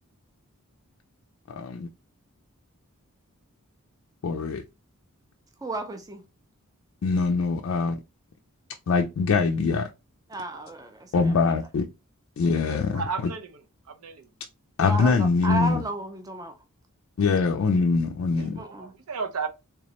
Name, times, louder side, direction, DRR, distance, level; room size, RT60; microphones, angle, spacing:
voice 1, 1.5-1.9 4.2-4.6 7.0-8.0 8.9-9.9 11.1-11.9 12.4-13.0 14.8-15.8 17.2-18.6, left 4 dB, 60° left, 0.3 m, -23 dB
voice 2, 5.6-6.2 10.3-11.3 14.8-16.6 18.6-18.9, right 1 dB, 15° right, 0.4 m, -33 dB
voice 3, 12.9-14.3 18.3-19.5, right 5 dB, 85° right, 0.6 m, -34 dB
3.6 x 3.0 x 2.8 m
head